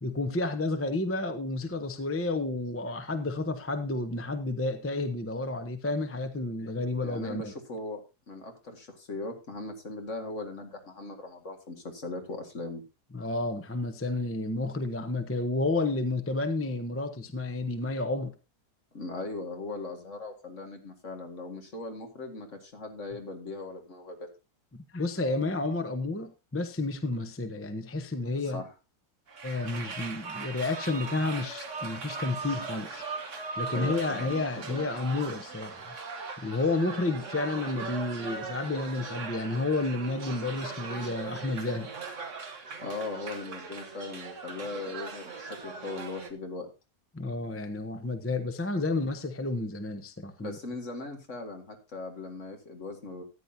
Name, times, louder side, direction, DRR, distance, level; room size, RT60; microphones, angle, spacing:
voice 1, 0.0-7.5 13.1-18.3 24.7-28.6 29.4-33.0 33.6-35.9 36.4-41.9 47.1-50.6, left 2 dB, 10° left, 0.6 m, -31 dB
voice 2, 7.0-8.0 8.3-12.8 18.9-24.2 28.4-28.7 33.7-34.4 34.7-34.9 42.8-46.7 50.4-53.2, left 2 dB, 50° left, 2.2 m, -39 dB
sound 1, 29.3-46.3, right 4 dB, 50° right, 1.7 m, -39 dB
14.0 x 9.7 x 2.7 m
omnidirectional pair, 1.7 m